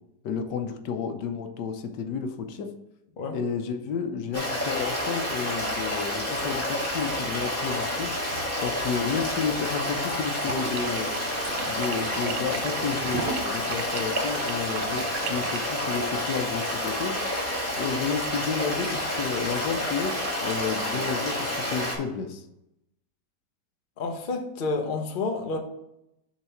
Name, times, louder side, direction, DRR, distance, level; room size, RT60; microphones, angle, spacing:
voice 1, 0.2-2.7 3.3-8.1 8.6-11.1 11.6-17.2 17.8-22.4, left 6 dB, 75° left, 7 dB, 1.3 m, -31 dB
Stream, 4.3-22.0, left 1 dB, 10° left, 1.7 m, -29 dB
sound 1, 10.4-15.6, right 7 dB, 75° right, 1.2 m, -37 dB
voice 2, 24.0-25.6, left 3 dB, 40° left, 4 dB, 0.7 m, -29 dB
7.3 x 3.8 x 5.7 m, 0.84 s
omnidirectional pair, 1.9 m